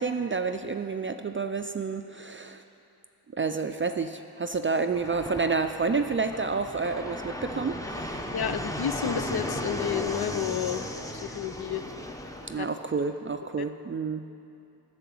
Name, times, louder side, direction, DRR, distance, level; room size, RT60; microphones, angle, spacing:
voice 1, 0.0-2.6 3.3-8.2 12.5-14.2, right 4 dB, 30° right, 7 dB, 0.4 m, -29 dB
Fixed-wing aircraft airplane, 4.9-12.6, left 1 dB, 10° left, 0.7 m, -35 dB
voice 2, 8.3-10.8 11.1-11.8 12.6-12.7, left 9 dB, 65° left, 11 dB, 0.6 m, -31 dB
9.2 x 6.9 x 8.3 m, 2.7 s
cardioid pair, 70°, 41 cm